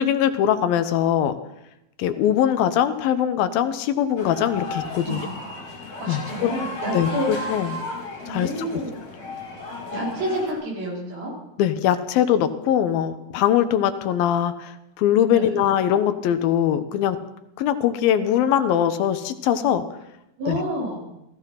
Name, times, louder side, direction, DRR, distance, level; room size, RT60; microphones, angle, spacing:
voice 1, 0.0-1.3 2.0-5.3 6.1-6.6 6.9-7.8 8.3-8.7 11.6-17.2 17.6-19.8 20.5-20.6, left 10 dB, 75° left, 10 dB, 2.6 m, -22 dB
sound 1, 4.2-10.5, left 2 dB, 40° left, 4.4 m, -34 dB
voice 2, 5.0-5.7 6.0-7.3 8.2-8.9 9.9-11.3 15.3-15.5 20.4-21.0, right 1 dB, 70° right, -3 dB, 6.5 m, -29 dB
16.5 x 14.5 x 5.8 m, 0.88 s
omnidirectional pair, 4.4 m